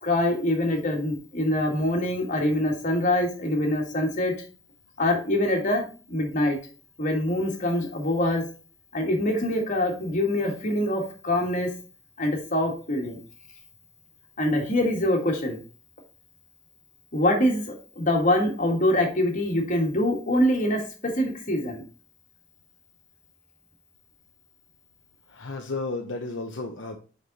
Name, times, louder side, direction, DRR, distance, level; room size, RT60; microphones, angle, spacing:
voice 1, 0.0-4.3 5.0-6.6 7.0-8.4 8.9-11.7 12.2-13.2 14.4-15.6 17.1-21.8, left 1 dB, 40° left, 2 dB, 1.8 m, -24 dB
voice 2, 25.3-27.0, left 3 dB, 65° left, 2 dB, 0.8 m, -33 dB
5.5 x 5.3 x 4.1 m, 0.37 s
head